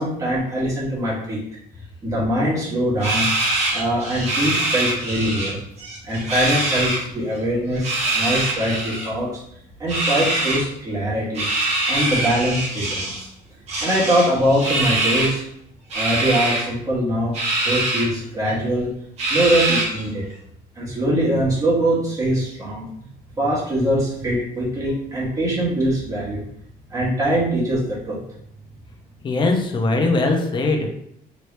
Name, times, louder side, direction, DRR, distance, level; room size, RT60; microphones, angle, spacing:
voice 1, 0.0-1.4 2.0-3.3 3.7-5.6 6.0-9.3 9.8-11.5 11.9-13.3 13.8-15.4 15.9-17.3 17.6-18.9 19.3-20.2 20.7-22.8 23.4-26.4 26.9-28.2, right 1 dB, 20° right, -7 dB, 1.4 m, -22 dB
sound 1, 3.0-5.5 5.8-7.0 7.7-9.1 9.9-10.6 11.4-13.2 13.7-15.4 15.9-16.6 17.3-18.1 18.5-18.6 19.2-20.1, right 2 dB, 40° right, 1.1 m, -23 dB
voice 2, 29.2-31.0, left 2 dB, 30° left, 3 dB, 0.6 m, -20 dB
3.0 x 2.6 x 3.2 m, 0.73 s
cardioid pair, 145°, 16 cm